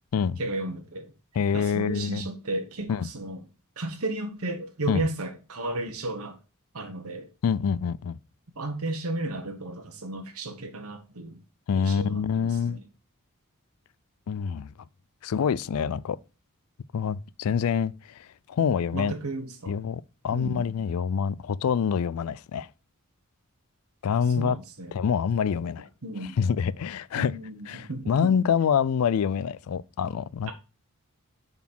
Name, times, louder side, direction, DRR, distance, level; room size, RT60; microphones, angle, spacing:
voice 1, 0.4-1.1 1.5-3.4 3.8-6.4 6.7-7.3 8.6-11.4 11.7-12.8 18.9-19.8 20.3-20.7 24.4-24.9 26.0-26.4 27.2-28.3, right 2 dB, 70° right, 1.2 m, -34 dB
voice 2, 1.4-2.2 2.9-3.1 4.9-5.0 7.4-8.2 11.7-12.8 14.3-14.7 15.2-16.2 16.9-19.1 19.7-22.7 24.0-24.6 24.9-25.9 26.4-27.3 27.7-30.5, left 7 dB, 70° left, 0.4 m, -26 dB
7.1 x 4.1 x 4.5 m
head